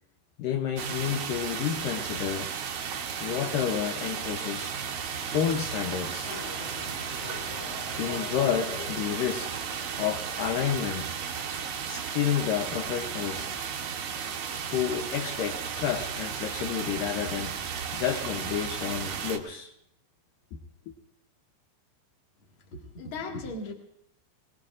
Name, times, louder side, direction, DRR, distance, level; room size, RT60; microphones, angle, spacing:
voice 1, 0.4-2.5 3.2-4.8 5.3-6.4 8.0-9.6 10.0-11.1 11.8-13.6 14.7-17.6 17.9-19.7, left 9 dB, 90° left, 1.9 m, -30 dB
sound 1, 0.8-19.4, right 7 dB, 85° right, 1.6 m, -34 dB
sound 2, 6.2-12.3, left 4 dB, 65° left, 3.7 m, -45 dB
voice 2, 22.7-23.7, left 3 dB, 45° left, 1.7 m, -37 dB
24.0 x 20.0 x 2.5 m
omnidirectional pair, 5.0 m